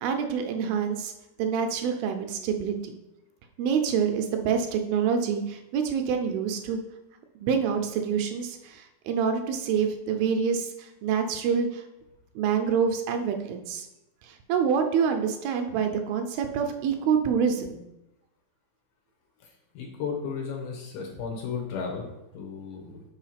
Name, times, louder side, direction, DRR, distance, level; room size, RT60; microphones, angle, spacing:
voice 1, 0.0-1.1 1.4-2.9 3.6-6.8 7.4-11.8 12.4-13.9 14.2-17.8, right 7 dB, 80° right, 6 dB, 2.3 m, -26 dB
voice 2, 19.4-23.0, left 5 dB, 75° left, 1 dB, 2.3 m, -35 dB
5.7 x 4.5 x 5.7 m, 0.92 s
omnidirectional pair, 4.4 m